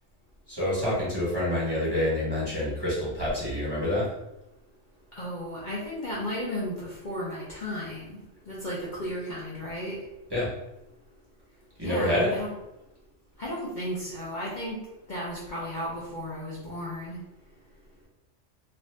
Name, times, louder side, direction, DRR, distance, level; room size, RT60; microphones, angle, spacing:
voice 1, 0.5-4.1 10.3-10.5 11.8-12.3, left 1 dB, 20° right, -8 dB, 0.9 m, -27 dB
voice 2, 5.2-10.0 11.8-12.5 13.4-14.8 15.1-17.2, equal, 45° left, -7 dB, 0.7 m, -34 dB
2.6 x 2.5 x 3.2 m, 0.92 s
omnidirectional pair, 1.2 m